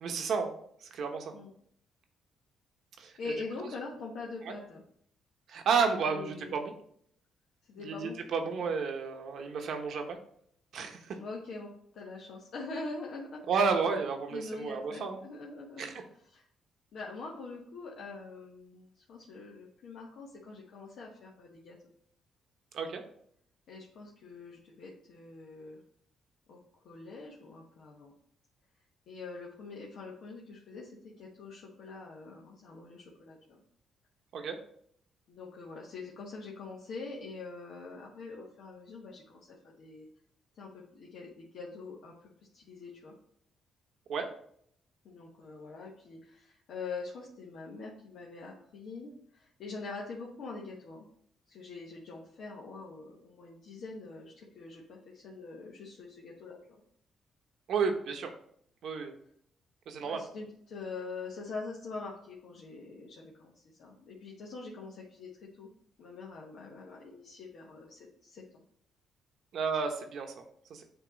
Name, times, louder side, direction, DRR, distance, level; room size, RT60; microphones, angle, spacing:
voice 1, 0.0-0.5 0.8-1.3 3.0-3.1 4.4-4.6 5.5-6.7 7.8-10.2 10.7-11.2 13.5-15.2 15.8-16.0 22.7-23.0 34.3-34.6 44.1-44.3 57.7-58.3 58.8-59.2 59.9-60.2 69.5-70.4 70.7-70.8, right 5 dB, 70° right, 4 dB, 1.0 m, -31 dB
voice 2, 3.2-4.8 6.1-6.5 7.7-8.2 8.4-8.7 11.1-13.4 14.3-15.9 16.3-16.4 16.9-21.8 23.7-25.8 26.5-28.1 29.1-33.6 35.3-40.1 40.6-43.1 45.0-51.1 51.5-56.6 60.0-65.7 66.0-68.6, left 3 dB, 70° left, -3 dB, 1.1 m, -44 dB
7.9 x 2.9 x 4.0 m, 0.66 s
cardioid pair, 90°, 0 cm